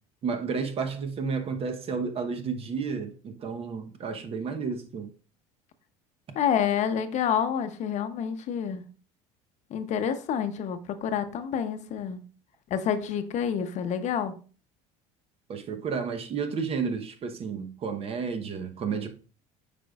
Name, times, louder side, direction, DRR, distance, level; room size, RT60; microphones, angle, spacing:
voice 1, 0.2-5.1 15.5-19.1, right 5 dB, 40° right, 0.9 m, -31 dB
voice 2, 6.3-8.8 9.7-12.2 12.7-14.4, left 8 dB, 50° left, 0.7 m, -28 dB
8.5 x 5.2 x 2.3 m
supercardioid pair, 110°, 15 cm